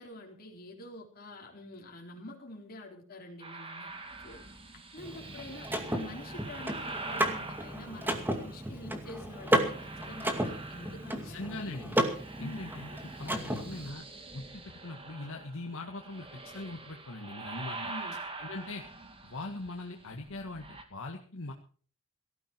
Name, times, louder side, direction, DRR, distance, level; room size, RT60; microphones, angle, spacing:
voice 1, 0.0-3.9 4.2-4.4 4.7-11.9 12.4-12.8 17.7-18.2, left 1 dB, 45° left, 1 dB, 4.2 m, -46 dB
sound 1, 3.4-8.7 9.3-11.5 11.7-20.8, right 3 dB, 25° right, 2.4 m, -45 dB
Car / Mechanisms, 5.0-13.9, right 1 dB, 10° right, 2.3 m, -33 dB
voice 2, 11.1-12.0 12.4-12.9 13.2-14.0 14.3-17.8 18.4-18.8 19.3-21.5, left 2 dB, 60° left, 2 dB, 1.9 m, -41 dB
17.5 x 14.0 x 4.6 m, 0.43 s
head